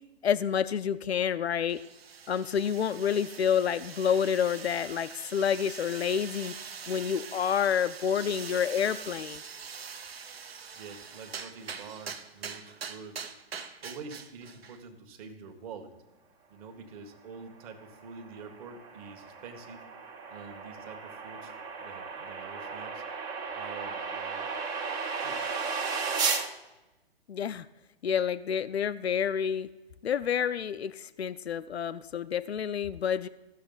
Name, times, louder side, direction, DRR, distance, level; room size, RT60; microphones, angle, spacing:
voice 1, 0.2-1.8 2.3-6.5 6.9-9.4 27.3-27.7 28.0-29.7 30.0-33.3, left 8 dB, 90° left, 14 dB, 0.5 m, -28 dB
sound 1, 1.7-14.8, right 6 dB, 75° right, 0.9 m, -43 dB
voice 2, 10.7-13.2 13.5-15.9 16.5-19.9 20.3-21.5 21.8-24.5 25.2-25.4, right 5 dB, 35° right, 6 dB, 1.4 m, -46 dB
sound 2, 17.8-26.5, right 5 dB, 15° right, 0.4 m, -35 dB
16.0 x 6.7 x 3.9 m, 1.1 s
figure-of-eight pair, 125°, 31 cm